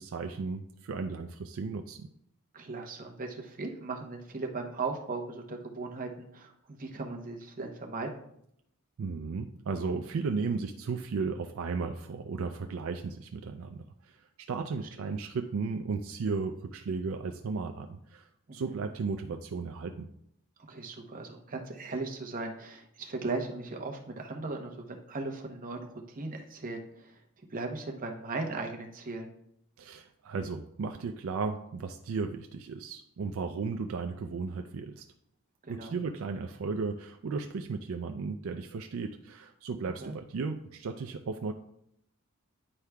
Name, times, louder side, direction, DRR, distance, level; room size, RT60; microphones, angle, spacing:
voice 1, 0.0-2.1 9.0-20.1 29.8-35.1 35.7-41.5, right 4 dB, 70° right, 6 dB, 0.4 m, -35 dB
voice 2, 2.5-8.2 15.0-15.1 18.5-18.8 20.7-27.2 27.5-29.3 35.6-35.9 40.0-40.1, right 3 dB, 40° right, 2 dB, 0.8 m, -38 dB
9.9 x 4.7 x 2.2 m, 0.73 s
head